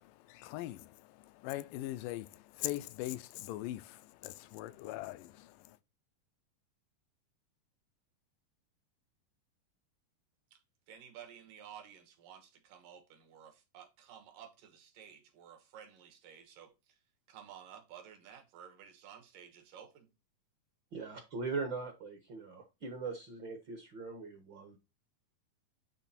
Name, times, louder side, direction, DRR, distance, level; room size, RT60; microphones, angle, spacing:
voice 1, 0.0-5.8, left 15 dB, 85° left, 2.2 m, -41 dB
voice 2, 10.9-17.0 17.3-20.1, right 9 dB, 75° right, 3.0 m, -53 dB
voice 3, 20.9-24.8, right 4 dB, 60° right, 1.3 m, -40 dB
10.5 x 3.5 x 4.1 m
omnidirectional pair, 3.8 m